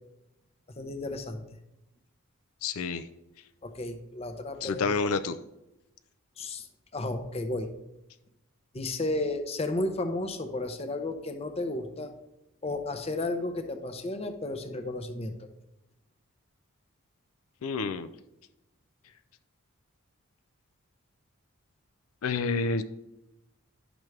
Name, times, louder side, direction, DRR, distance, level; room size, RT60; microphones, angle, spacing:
voice 1, 0.8-1.4 3.6-5.2 6.4-6.7 6.9-7.7 8.7-12.1 12.6-15.5, left 2 dB, 30° left, 7 dB, 0.6 m, -33 dB
voice 2, 2.6-3.0 4.6-5.3 17.6-18.1 22.2-22.8, left 4 dB, 80° left, 10 dB, 0.4 m, -28 dB
10.5 x 6.0 x 3.2 m, 0.93 s
head